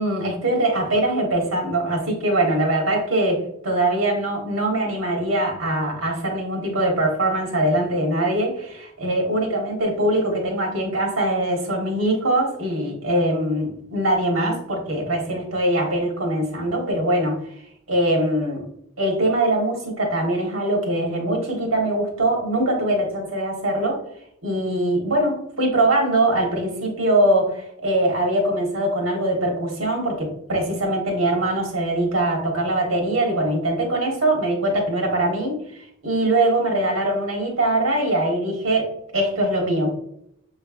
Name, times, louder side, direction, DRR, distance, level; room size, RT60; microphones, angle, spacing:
voice 1, 0.0-17.4 17.9-18.7 19.0-24.0 24.4-35.6 36.0-39.9, right 1 dB, 85° right, 1 dB, 1.4 m, -22 dB
6.3 x 3.2 x 2.5 m, 0.72 s
head